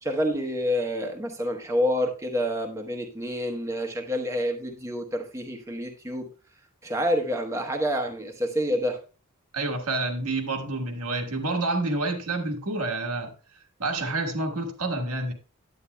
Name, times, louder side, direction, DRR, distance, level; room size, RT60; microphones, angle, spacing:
voice 1, 0.0-6.3 6.8-9.0, equal, 15° right, 0.9 m, -28 dB
voice 2, 9.5-13.3 13.8-15.3, right 2 dB, 80° right, 1.4 m, -28 dB
9.8 x 8.7 x 2.2 m
head